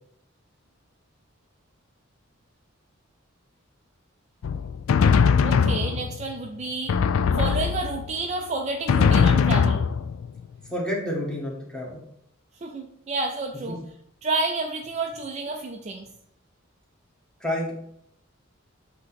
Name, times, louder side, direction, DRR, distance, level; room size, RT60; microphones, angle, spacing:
Drum, 4.4-6.3 6.9-8.2 8.9-10.4, left 6 dB, 80° left, 0.4 m, -21 dB
voice 1, 5.4-7.0 7.3-9.8 12.6-13.8 14.2-16.1, right 3 dB, 35° right, 3 dB, 0.4 m, -30 dB
voice 2, 10.7-12.0 13.7-13.8 17.4-17.7, left 1 dB, 5° left, -4 dB, 1.5 m, -29 dB
7.9 x 2.9 x 4.1 m, 0.73 s
head